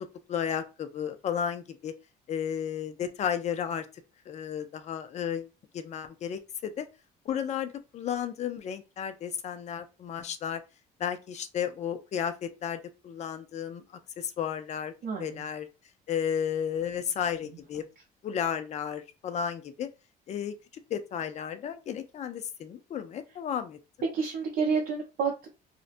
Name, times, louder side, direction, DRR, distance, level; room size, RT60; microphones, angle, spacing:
voice 1, 0.3-1.9 2.3-3.9 4.3-5.5 5.7-6.9 7.3-10.6 11.0-13.8 14.2-14.9 15.2-15.7 16.1-17.8 18.2-19.9 20.3-20.5 20.9-23.8, left 8 dB, 40° left, 0.4 m, -33 dB
voice 2, 15.0-15.4 24.1-25.5, right 5 dB, 65° right, 0.6 m, -29 dB
2.5 x 2.1 x 2.5 m
cardioid pair, 110°, 17 cm